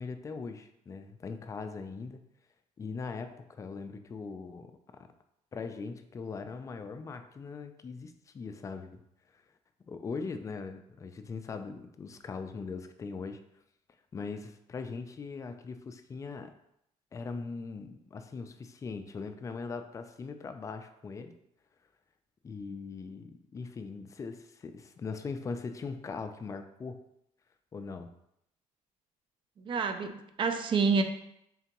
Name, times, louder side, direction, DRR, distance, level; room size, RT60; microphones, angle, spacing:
voice 1, 0.0-2.2 2.8-5.1 5.5-9.0 9.3-9.4 9.9-13.4 14.1-16.5 17.1-21.3 22.4-27.0 27.7-28.1, left 4 dB, 25° left, 8 dB, 0.3 m, -40 dB
voice 2, 29.6-31.0, right 5 dB, 40° right, 8 dB, 0.4 m, -28 dB
3.8 x 3.3 x 2.9 m, 0.78 s
cardioid pair, 120°, 13 cm